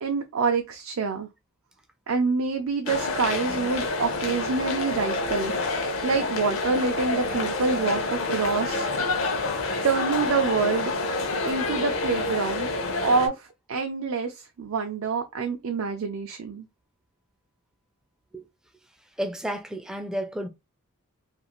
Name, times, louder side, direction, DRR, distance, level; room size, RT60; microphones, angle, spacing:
voice 1, 0.0-1.3 2.1-9.1 9.8-10.9 11.4-12.7 13.0-16.7, right 4 dB, 75° right, 0.4 m, -27 dB
sound 1, 2.9-13.3, left 3 dB, 70° left, 0.6 m, -28 dB
voice 2, 19.2-20.5, equal, 5° right, 0.3 m, -31 dB
2.5 x 2.4 x 2.9 m
head